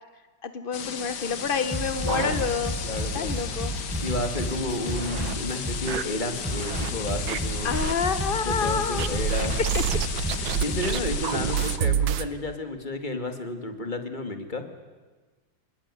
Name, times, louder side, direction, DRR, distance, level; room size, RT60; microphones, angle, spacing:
voice 1, 0.4-2.7 3.1-3.7 7.6-9.5 9.7-9.8, left 6 dB, 45° left, 10 dB, 0.7 m, -28 dB
sound 1, 0.7-11.8, left 7 dB, 60° left, 1.9 m, -35 dB
sound 2, 1.4-2.9 3.3-3.4 3.7-3.8 4.4-5.4 5.9-6.9 7.3-7.9 9.0-12.3, right 9 dB, 85° right, 1.8 m, -29 dB
sound 3, 1.7-5.8 6.4-10.9, equal, 5° right, 7.5 m, -32 dB
voice 2, 2.0-2.4 2.8-3.3 4.0-7.7 8.4-9.5 10.6-14.6, left 2 dB, 25° left, 7 dB, 2.3 m, -31 dB
25.0 x 21.0 x 9.9 m, 1.3 s
omnidirectional pair, 2.1 m